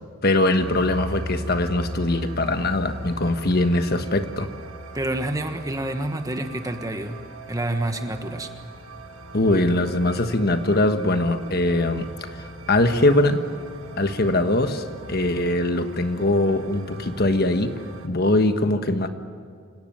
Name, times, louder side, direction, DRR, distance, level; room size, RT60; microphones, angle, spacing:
voice 1, 0.2-4.5 9.3-12.1 12.7-13.4 14.0-17.7 18.0-19.1, left 2 dB, 50° left, 8 dB, 1.3 m, -21 dB
sound 1, 0.6-18.1, right 1 dB, 80° right, 1.9 m, -39 dB
voice 2, 4.9-7.2 7.5-8.5, right 1 dB, 15° right, 7 dB, 1.3 m, -28 dB
27.0 x 18.0 x 9.1 m, 2.1 s
head